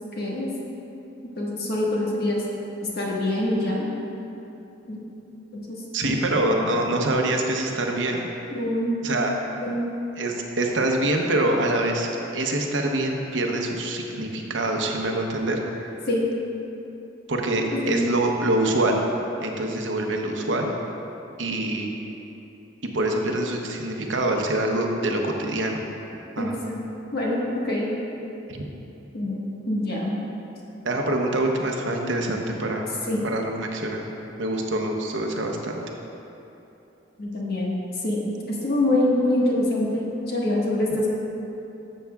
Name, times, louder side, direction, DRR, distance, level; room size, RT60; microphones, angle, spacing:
voice 1, 0.2-0.5 1.4-2.4 2.9-3.8 4.9-5.0 5.5-6.2 8.5-9.0 9.6-9.9 16.1-16.3 17.9-18.1 26.4-26.8 27.1-27.9 29.1-29.4 29.7-30.2 33.1-33.2 37.2-37.8 38.0-41.1, left 1 dB, 60° left, -4 dB, 1.5 m, -25 dB
voice 2, 5.9-8.3 9.0-9.3 10.2-15.8 17.3-19.0 19.4-20.7 21.4-21.9 22.9-25.8 26.4-26.6 28.5-28.6 30.8-32.9 33.2-34.1 34.4-35.8, right 1 dB, 80° right, 1 dB, 0.8 m, -25 dB
12.5 x 7.0 x 2.4 m, 3.0 s
head